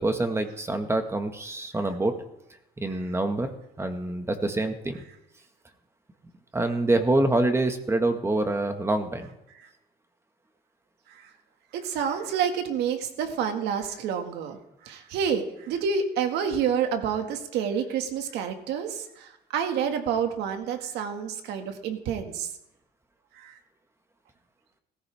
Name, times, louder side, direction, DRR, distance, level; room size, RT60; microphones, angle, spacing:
voice 1, 0.0-2.1 2.8-5.0 6.5-9.3, right 2 dB, 15° right, 6 dB, 1.7 m, -26 dB
voice 2, 11.7-14.6 14.8-22.5 23.3-23.6, right 7 dB, 85° right, 5 dB, 2.0 m, -28 dB
17.5 x 15.0 x 3.6 m, 0.86 s
cardioid pair, 110°, 17 cm